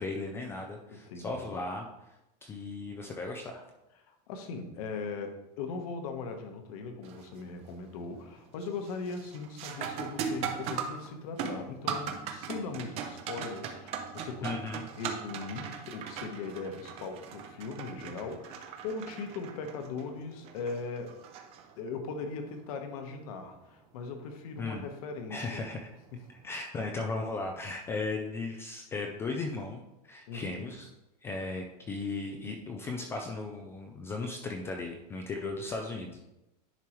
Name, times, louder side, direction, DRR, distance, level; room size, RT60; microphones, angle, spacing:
voice 1, 0.0-1.9 2.4-3.6 14.4-14.9 24.6-24.9 25.3-25.9 26.3-30.9 31.2-36.2, left 3 dB, 10° left, 2 dB, 0.3 m, -36 dB
voice 2, 0.9-1.5 4.1-14.6 15.0-21.1 21.8-25.6 26.1-26.2 30.3-30.7, left 4 dB, 60° left, 5 dB, 1.2 m, -39 dB
sound 1, 7.0-7.4 7.8-8.3 8.6-22.1 24.6-24.7 25.6-25.8, right 7 dB, 30° right, 0.6 m, -39 dB
10.5 x 4.6 x 3.0 m, 0.93 s
supercardioid pair, 175°, 21 cm